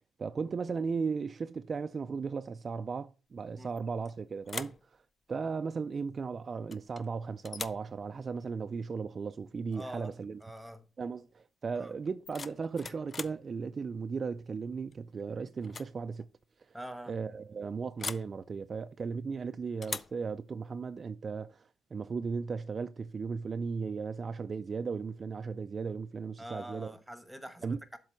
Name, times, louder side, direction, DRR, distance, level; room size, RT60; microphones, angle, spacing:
voice 1, 0.2-4.8 5.3-10.4 11.0-16.3 17.1-26.9 27.6-27.8, right 5 dB, 40° right, 0.3 m, -36 dB
sound 1, 3.8-4.1 4.4-4.9 6.7-7.1 7.4-7.9 9.7-9.9 10.2-10.6 12.0-13.4 14.9-15.2 15.6-16.0 16.2-16.3 18.0-18.3 19.8-20.2, left 5 dB, 35° left, 0.4 m, -41 dB
voice 2, 9.7-10.9 11.7-11.9 16.7-17.2 26.4-28.0, equal, 5° right, 1.1 m, -45 dB
7.3 x 3.9 x 6.2 m
cardioid pair, 90°, 0 cm